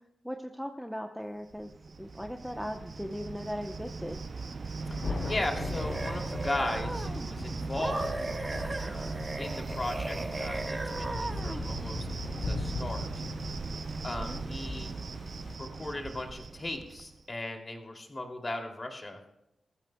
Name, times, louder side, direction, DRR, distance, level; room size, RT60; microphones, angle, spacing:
voice 1, 0.2-1.7 2.0-4.2 14.2-14.4, equal, ahead, 4 dB, 0.8 m, -38 dB
Cricket, 1.5-17.2, right 4 dB, 50° right, 0.5 m, -39 dB
Thunder, 4.8-15.6, left 3 dB, 70° left, 3.0 m, -39 dB
sound 1, 5.1-7.3 7.8-11.7, right 2 dB, 25° right, 1.3 m, -37 dB
voice 2, 5.3-8.2 8.5-12.1 12.4-13.1 14.0-14.9 15.6-19.2, left 2 dB, 25° left, 2 dB, 2.6 m, -37 dB
22.0 x 14.5 x 2.2 m, 0.85 s
wide cardioid pair, 125°, 0 cm